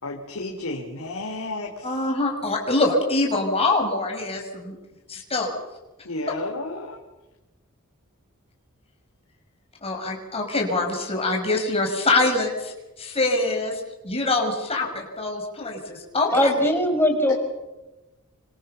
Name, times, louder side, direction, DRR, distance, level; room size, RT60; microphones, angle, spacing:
voice 1, 0.0-2.1 6.0-7.0, left 2 dB, 85° left, 1 dB, 3.7 m, -32 dB
voice 2, 1.8-4.8 5.1-5.6 9.8-16.5, left 2 dB, 30° left, 1 dB, 6.0 m, -24 dB
voice 3, 16.3-17.3, left 1 dB, 10° left, 4 dB, 5.4 m, -20 dB
28.5 x 25.5 x 7.1 m, 1.1 s
head